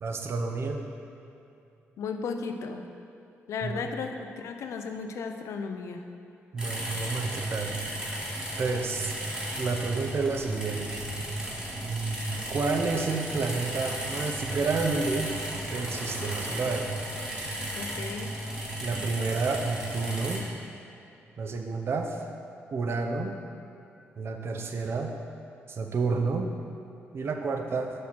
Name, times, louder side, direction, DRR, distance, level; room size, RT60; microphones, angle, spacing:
voice 1, 0.0-0.9 3.6-3.9 6.5-7.8 8.6-9.1 9.6-11.0 12.5-15.3 15.6-16.9 18.8-20.4 21.4-22.2 22.7-23.3 24.2-25.1 25.7-26.5 27.1-27.9, right 4 dB, 55° right, 3 dB, 0.6 m, -30 dB
voice 2, 2.0-2.9 3.5-6.1 17.7-18.3, left 5 dB, 75° left, 6 dB, 0.4 m, -35 dB
sound 1, 6.6-20.4, right 1 dB, 15° right, 1.5 m, -35 dB
Truck, 10.1-18.8, right 2 dB, 10° left, 1.3 m, -42 dB
6.2 x 3.0 x 5.8 m, 2.6 s
cardioid pair, 70°, 5 cm